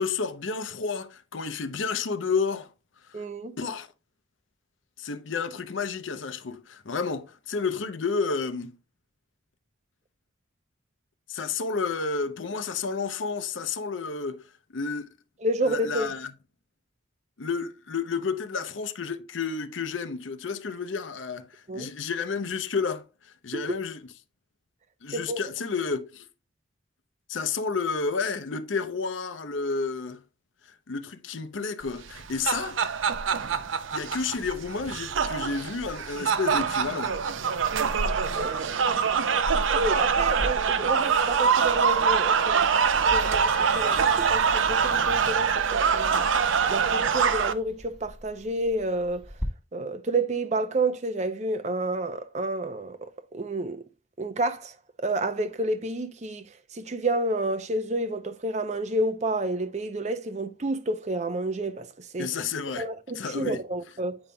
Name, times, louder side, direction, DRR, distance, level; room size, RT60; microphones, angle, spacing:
voice 1, 0.0-2.7 3.6-3.9 5.0-8.7 11.3-14.4 14.7-15.1 15.6-16.3 17.4-23.0 23.4-24.0 25.0-26.3 27.3-30.2 30.9-32.9 33.9-37.1 62.2-62.9 63.2-63.6, left 5 dB, 80° left, 0.7 m, -31 dB
voice 2, 3.1-3.6 15.4-16.1 21.7-21.9 23.5-23.7 25.1-25.4 38.3-38.7 39.8-42.8 43.1-46.3 46.7-49.2 49.7-53.0 53.3-53.8 54.2-62.3 62.8-64.2, right 2 dB, 35° right, 0.5 m, -30 dB
sound 1, 32.1-47.5, right 6 dB, 80° right, 0.5 m, -24 dB
Sliding door, 40.3-49.5, equal, ahead, 1.3 m, -41 dB
8.7 x 5.4 x 2.2 m
head